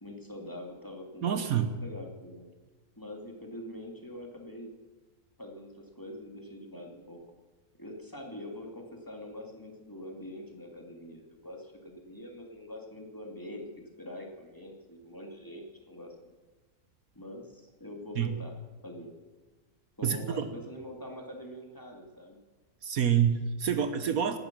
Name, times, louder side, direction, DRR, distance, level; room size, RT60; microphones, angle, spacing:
voice 1, 0.0-2.5 3.0-4.7 5.4-7.2 7.8-16.1 17.1-18.5 18.8-19.1 20.0-22.4, left 1 dB, 15° left, 1 dB, 2.4 m, -44 dB
voice 2, 1.2-1.7 18.1-18.4 20.0-20.5 22.8-24.4, right 8 dB, 70° right, 9 dB, 1.4 m, -27 dB
17.5 x 11.5 x 6.1 m, 1.3 s
omnidirectional pair, 1.6 m